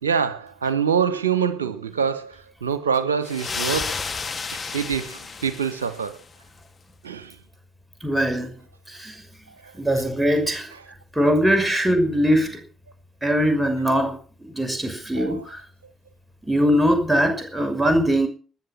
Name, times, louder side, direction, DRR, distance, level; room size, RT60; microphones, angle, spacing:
voice 1, 0.0-4.0 4.5-6.2 7.0-7.4 9.6-9.7 15.2-15.4, right 7 dB, 80° right, 1.0 m, -25 dB
sound 1, 3.2-6.3, left 5 dB, 35° left, 2.4 m, -31 dB
voice 2, 8.0-8.5 8.9-9.2 9.7-10.7 11.1-12.6 13.2-15.6 16.5-18.3, equal, 5° right, 5.9 m, -21 dB
20.0 x 10.5 x 6.0 m
figure-of-eight pair, 40°, 0 cm